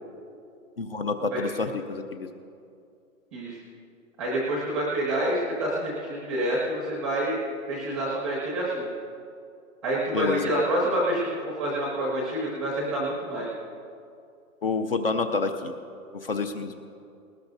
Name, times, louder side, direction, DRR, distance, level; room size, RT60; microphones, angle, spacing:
voice 1, 0.8-2.3 10.1-10.4 14.6-15.7 16.1-16.7, left 4 dB, 40° left, 7 dB, 0.6 m, -28 dB
voice 2, 4.2-7.4 7.7-8.9 9.8-13.5, right 1 dB, ahead, -5 dB, 0.7 m, -27 dB
19.5 x 19.0 x 2.6 m, 2.5 s
hypercardioid pair, 170°, 43 cm